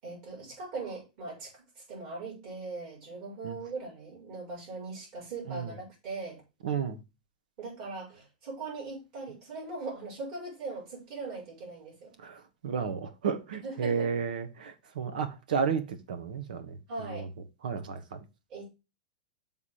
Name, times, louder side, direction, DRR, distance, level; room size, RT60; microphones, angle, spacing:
voice 1, 0.0-6.4 7.6-12.2 13.6-14.1 16.9-17.3 18.5-18.7, right 3 dB, 35° right, 5.4 m, -40 dB
voice 2, 6.6-7.0 12.2-16.8 17.1-17.3 17.6-18.2, right 6 dB, 90° right, 1.3 m, -32 dB
7.2 x 3.6 x 6.3 m
supercardioid pair, 175°, 4 cm